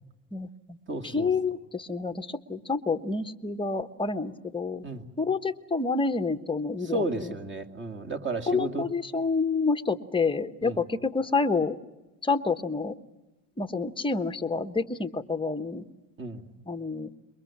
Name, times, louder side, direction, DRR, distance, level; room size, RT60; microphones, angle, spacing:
voice 1, 0.3-0.8 1.0-4.9 5.2-7.3 8.5-11.8 12.2-12.9 13.6-15.8 16.7-17.1, left 4 dB, 10° left, 8 dB, 1.2 m, -28 dB
voice 2, 0.9-1.3 4.8-5.0 6.9-8.9 10.6-10.8 16.2-16.4, right 2 dB, 25° right, 5 dB, 2.7 m, -32 dB
27.5 x 23.0 x 7.4 m, 1.0 s
supercardioid pair, 95°, 47 cm